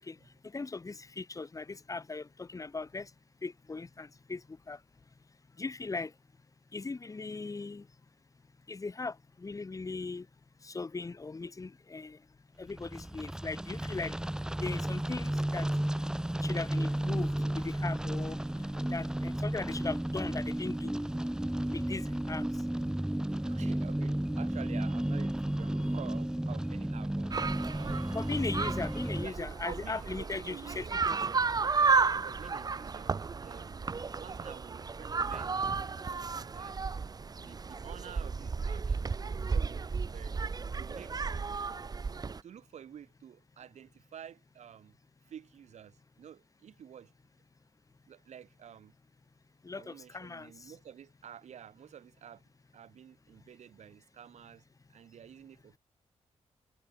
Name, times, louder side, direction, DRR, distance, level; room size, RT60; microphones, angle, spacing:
voice 1, 0.4-3.1 3.4-4.8 5.6-6.1 6.7-7.9 8.7-10.3 10.6-12.2 12.6-14.1 14.6-15.7 16.4-18.4 18.9-21.0 21.7-22.5 28.1-31.2 49.6-50.5, left 3 dB, 30° left, 4.1 m, -38 dB
sound 1, 12.7-29.3, right 1 dB, 5° right, 1.0 m, -33 dB
voice 2, 23.3-27.4 27.7-28.0 28.4-28.5 29.2-31.0 31.8-33.9 34.2-36.0 36.4-36.8 37.4-40.4 40.8-41.6 42.4-45.0 45.3-47.1 48.1-48.9 49.7-52.4 52.7-54.6 54.9-55.8, right 9 dB, 85° right, 5.7 m, -50 dB
sound 2, 27.3-42.4, right 4 dB, 35° right, 1.3 m, -33 dB
wide cardioid pair, 120°, 11 cm